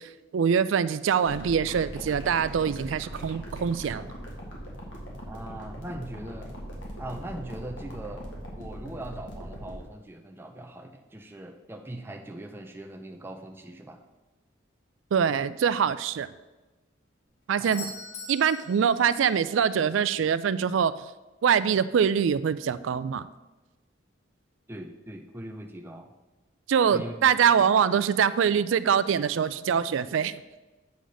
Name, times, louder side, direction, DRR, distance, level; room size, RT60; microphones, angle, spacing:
voice 1, 0.0-4.1 15.1-16.3 17.5-17.9 18.3-20.9 21.4-23.3 26.7-30.4, right 7 dB, 80° right, 15 dB, 0.4 m, -24 dB
sound 1, 1.2-9.8, equal, 70° left, 1.9 m, -40 dB
voice 2, 5.3-6.5 7.0-8.3 8.6-14.0 17.6-17.9 24.7-26.1 26.9-27.2 27.6-27.7, right 1 dB, 10° right, 4 dB, 0.5 m, -40 dB
Doorbell, 17.6-19.5 23.5-23.6, left 3 dB, 35° left, 1.5 m, -43 dB
8.3 x 4.0 x 6.2 m, 1.1 s
head